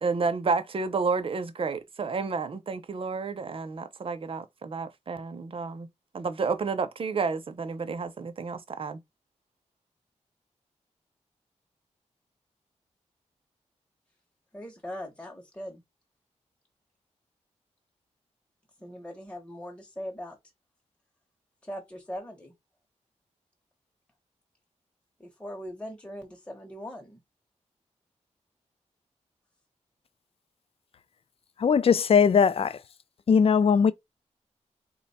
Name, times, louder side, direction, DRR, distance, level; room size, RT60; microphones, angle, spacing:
voice 1, 0.0-5.9 6.1-9.0, right 4 dB, 50° right, 0.6 m, -30 dB
voice 2, 14.5-15.8 18.8-20.4 21.6-22.5 25.2-27.2, equal, 10° left, 0.9 m, -40 dB
voice 3, 31.6-32.8 33.3-33.9, left 6 dB, 50° left, 0.4 m, -20 dB
4.0 x 2.3 x 4.1 m
wide cardioid pair, 130°, 12 cm